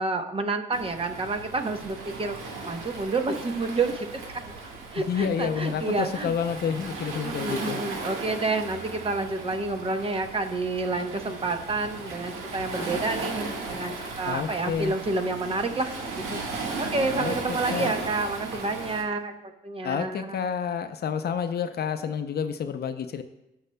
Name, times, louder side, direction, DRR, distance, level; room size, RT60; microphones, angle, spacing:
voice 1, 0.0-4.6 4.9-6.3 7.2-19.3 19.6-20.3, right 3 dB, 30° right, 7 dB, 0.8 m, -29 dB
Waves surf, 0.7-19.0, right 3 dB, 85° right, 1.5 m, -36 dB
voice 2, 5.0-7.8 14.3-14.9 17.2-17.4 17.7-18.0 19.8-23.2, left 7 dB, 55° left, 9 dB, 0.6 m, -29 dB
16.5 x 5.6 x 2.2 m, 0.91 s
cardioid pair, 90°, 20 cm